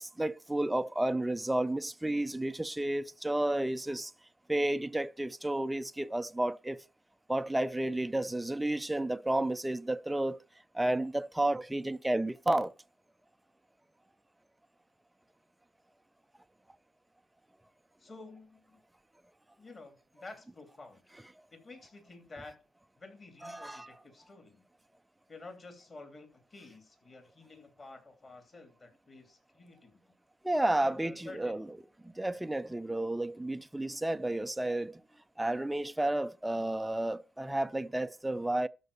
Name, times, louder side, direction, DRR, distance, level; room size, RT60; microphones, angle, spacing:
voice 1, 0.0-4.1 4.5-6.8 7.3-10.4 10.7-12.7 23.4-23.9 30.4-31.6 32.0-35.0 35.4-38.7, right 1 dB, 5° right, 0.4 m, -31 dB
voice 2, 18.0-18.8 19.6-21.0 21.5-22.5 23.0-24.6 25.3-30.0 30.8-31.7, left 3 dB, 25° left, 2.9 m, -50 dB
12.5 x 4.6 x 6.9 m
cardioid pair, 125°, 0 cm